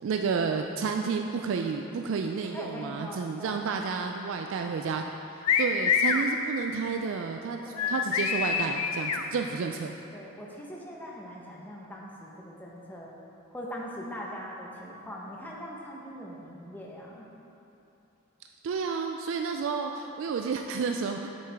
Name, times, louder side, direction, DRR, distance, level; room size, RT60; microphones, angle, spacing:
voice 1, 0.0-5.0 5.3-9.9 18.6-21.3, right 5 dB, 60° right, 3 dB, 0.3 m, -31 dB
voice 2, 2.5-3.7 7.7-8.2 10.1-13.1 13.5-17.3, equal, 10° left, -3 dB, 0.8 m, -41 dB
sound 1, 5.5-6.2 7.8-9.2, left 7 dB, 90° left, 0.5 m, -25 dB
8.4 x 6.3 x 3.5 m, 2.9 s
head